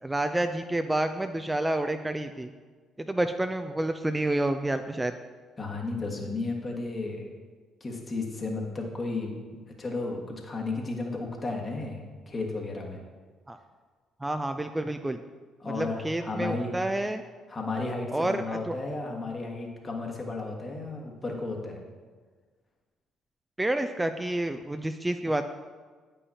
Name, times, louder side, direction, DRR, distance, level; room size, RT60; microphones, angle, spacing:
voice 1, 0.0-2.5 3.0-5.1 13.5-13.6 14.2-15.2 15.7-17.2 18.1-18.7 23.6-25.5, right 1 dB, 15° right, 7 dB, 0.4 m, -29 dB
voice 2, 5.6-7.3 7.8-9.3 9.8-12.0 12.3-13.0 15.6-16.7 17.5-21.8, left 3 dB, 35° left, 0 dB, 1.6 m, -33 dB
9.4 x 5.6 x 2.8 m, 1.5 s
hypercardioid pair, 45°, 0 cm